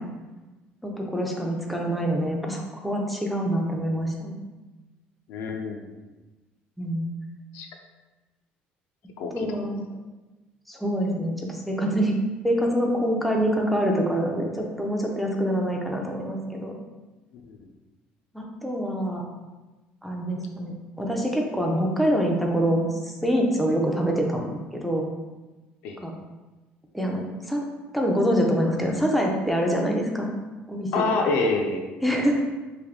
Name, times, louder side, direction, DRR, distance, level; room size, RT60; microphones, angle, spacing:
voice 1, 0.8-4.4 6.8-7.1 9.3-9.8 10.7-12.1 12.4-16.8 18.3-19.3 20.0-25.1 26.0-26.1 26.9-27.6 27.9-30.3 30.7-31.1 32.0-32.4, equal, ahead, -1 dB, 0.4 m, -25 dB
voice 2, 5.3-5.8 7.5-7.7 9.2-9.7 17.3-17.6 25.8-26.0 30.9-32.2, left 3 dB, 75° left, 3 dB, 0.5 m, -27 dB
3.4 x 2.6 x 3.6 m, 1.2 s
cardioid pair, 155°, 4 cm